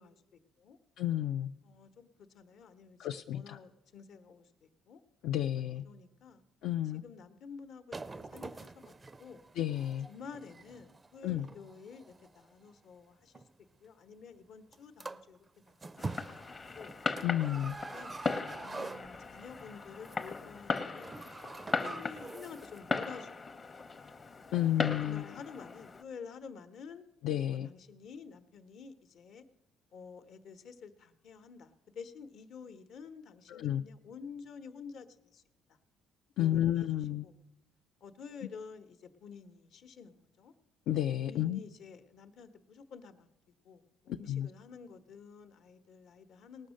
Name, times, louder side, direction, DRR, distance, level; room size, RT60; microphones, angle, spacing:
voice 1, 0.0-0.8 1.6-3.1 3.3-5.0 5.6-6.4 7.0-9.4 10.1-13.4 13.8-16.4 16.7-16.9 17.6-18.2 18.6-21.2 21.6-23.5 25.0-27.0 27.5-29.4 29.9-35.1 35.3-35.4 35.7-35.8 36.4-36.9 37.2-37.3 38.0-40.5 41.2-43.3 43.6-46.7, left 6 dB, 65° left, 9 dB, 0.9 m, -50 dB
voice 2, 1.0-1.5 3.0-3.6 5.2-5.8 6.6-7.0 9.6-10.1 11.2-11.5 17.2-17.8 24.5-25.2 27.2-27.7 33.5-33.8 36.4-37.3 40.9-41.6 44.1-44.5, left 12 dB, 80° left, 6 dB, 0.3 m, -31 dB
sound 1, 7.9-12.7 13.3-13.5 14.7-14.8 15.0-15.4 15.7-19.5 19.9-20.3 20.6-22.8 23.0-23.1, right 3 dB, 20° right, 0.4 m, -45 dB
Fireworks, 16.0-26.0, left 4 dB, 30° left, 0.7 m, -38 dB
18.5 x 6.4 x 6.3 m, 0.96 s
cardioid pair, 115°, 0 cm